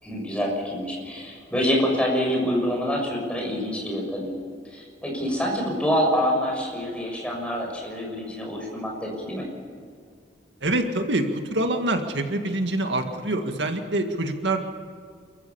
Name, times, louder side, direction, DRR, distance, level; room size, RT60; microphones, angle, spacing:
voice 1, 0.0-4.3 4.7-9.4, equal, 5° left, -1 dB, 6.4 m, -26 dB
voice 2, 10.6-14.6, right 2 dB, 80° right, 5 dB, 2.0 m, -25 dB
29.0 x 14.5 x 7.1 m, 2.1 s
head